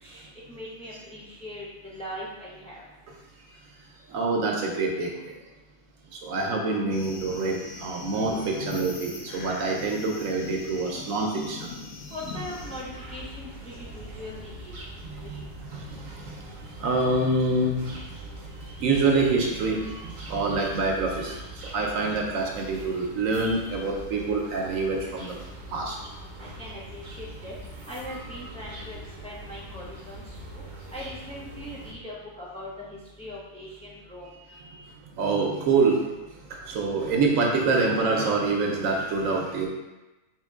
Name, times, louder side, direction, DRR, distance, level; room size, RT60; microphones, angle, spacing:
voice 1, 0.0-2.8 12.1-14.8 15.2-15.4 26.4-27.5 27.9-29.0 29.2-30.6 30.9-34.3, left 1 dB, 10° left, -6 dB, 0.4 m, -40 dB
voice 2, 4.1-5.1 6.1-11.7 15.0-17.9 18.8-25.4 25.7-26.0 34.5-34.8 35.1-36.0 36.5-39.7, right 3 dB, 75° right, 0 dB, 1.0 m, -26 dB
sound 1, 6.9-12.8, left 3 dB, 80° left, 1.1 m, -41 dB
sound 2, 12.3-31.9, right 1 dB, 45° right, 0.6 m, -42 dB
3.7 x 2.9 x 3.5 m, 1.1 s
omnidirectional pair, 1.5 m